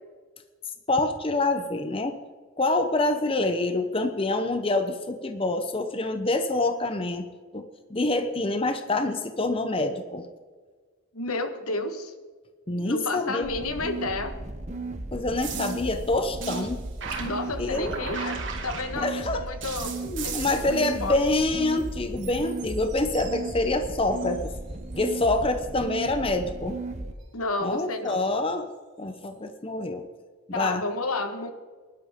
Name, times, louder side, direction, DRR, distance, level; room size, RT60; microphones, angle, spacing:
voice 1, 0.9-2.2 2.6-7.3 7.5-10.3 12.7-13.5 15.1-16.8 17.1-17.2 17.6-17.9 19.0-19.4 20.0-24.5 25.0-26.8 27.6-28.7 29.0-30.1 30.5-30.8, left 2 dB, 25° left, 8 dB, 0.7 m, -26 dB
voice 2, 11.1-12.1 12.8-14.3 17.2-19.9 20.2-21.2 27.3-28.3 30.5-31.5, left 2 dB, 80° left, 8 dB, 1.4 m, -31 dB
sound 1, 13.4-27.1, right 2 dB, 30° right, 0.9 m, -36 dB
sound 2, 15.4-19.2 19.6-21.9 22.2-24.5 24.9-25.3 28.0-28.3 29.2-29.3, right 6 dB, 55° right, 2.5 m, -39 dB
20.0 x 11.5 x 3.7 m, 1.5 s
head